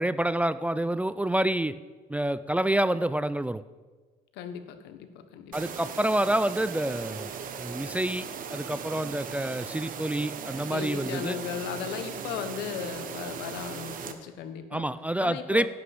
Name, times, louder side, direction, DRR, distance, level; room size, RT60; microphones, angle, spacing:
voice 1, 0.0-1.8 2.1-3.6 5.5-11.4 14.7-15.7, right 1 dB, 10° right, 14 dB, 0.3 m, -28 dB
voice 2, 4.3-5.8 10.7-14.9 15.2-15.7, left 8 dB, 90° left, 9 dB, 1.1 m, -37 dB
sound 1, 5.5-14.1, right 7 dB, 55° right, 1.1 m, -38 dB
11.0 x 5.9 x 7.8 m, 1.4 s
cardioid pair, 110°, 17 cm